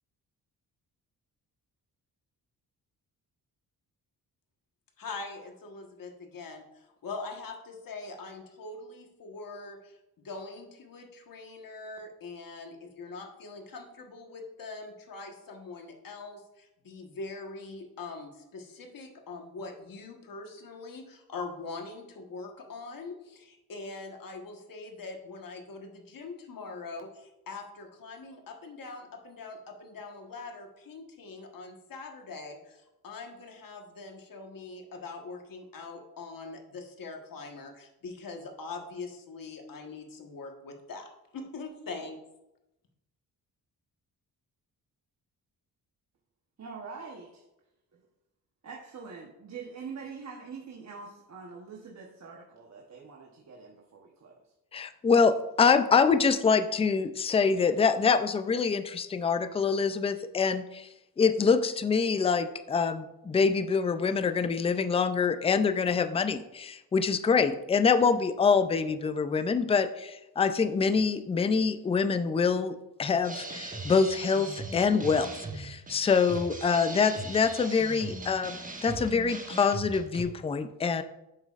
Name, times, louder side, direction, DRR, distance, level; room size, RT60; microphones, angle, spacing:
voice 1, 5.0-42.2, left 3 dB, 60° left, 3 dB, 1.4 m, -43 dB
voice 2, 46.6-47.4 47.9-48.0 48.6-54.4, right 5 dB, 45° right, -2 dB, 1.1 m, -44 dB
voice 3, 54.7-60.9 61.2-81.0, left 5 dB, 15° left, 11 dB, 0.3 m, -25 dB
sound 1, 73.2-80.2, right 2 dB, 20° right, 1.1 m, -39 dB
9.0 x 7.1 x 2.5 m, 0.93 s
cardioid pair, 110°, 37 cm